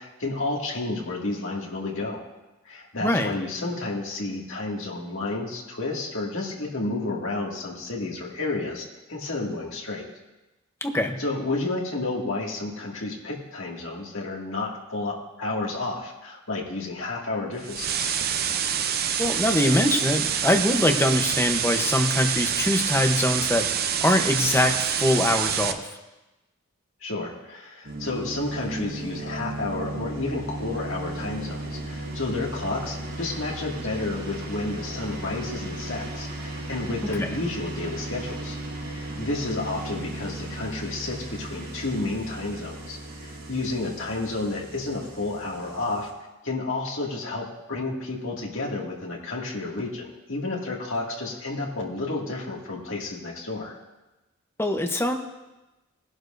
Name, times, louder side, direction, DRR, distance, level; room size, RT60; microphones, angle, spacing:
voice 1, 0.0-2.2 2.6-10.1 11.2-18.1 27.0-38.6 38.9-46.1 46.4-53.8, left 2 dB, 65° left, -2 dB, 2.2 m, -31 dB
voice 2, 3.0-3.3 10.8-11.2 19.2-25.9 37.0-37.3 54.6-55.1, left 1 dB, 10° left, 4 dB, 0.9 m, -23 dB
sound 1, 17.6-25.7, right 8 dB, 50° right, 0.6 m, -26 dB
sound 2, 27.8-46.1, right 2 dB, 75° right, 3.2 m, -36 dB
19.0 x 11.0 x 2.6 m, 1.1 s
head